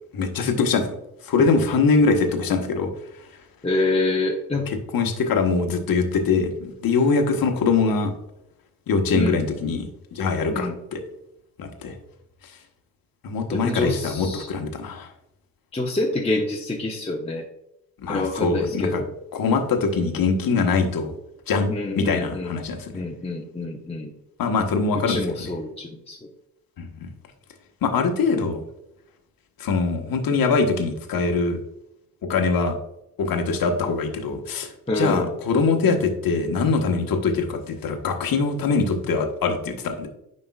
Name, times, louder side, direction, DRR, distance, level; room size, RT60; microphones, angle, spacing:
voice 1, 0.1-1.0 1.2-2.9 3.2-3.3 4.7-8.1 8.9-11.0 11.6-11.9 13.2-15.1 18.0-19.0 19.3-21.1 21.5-23.0 24.4-25.5 26.8-27.1 27.8-28.6 29.6-31.6 32.3-32.8 33.2-40.1, left 4 dB, 55° left, 4 dB, 1.4 m, -23 dB
voice 2, 3.6-4.7 9.1-9.5 10.5-10.8 13.5-14.5 15.7-17.4 18.1-19.1 21.7-22.5 22.9-24.1 25.1-26.2 34.9-35.3, left 2 dB, 15° left, -1 dB, 1.0 m, -26 dB
9.6 x 5.2 x 2.4 m, 0.83 s
hypercardioid pair, 50°, 41 cm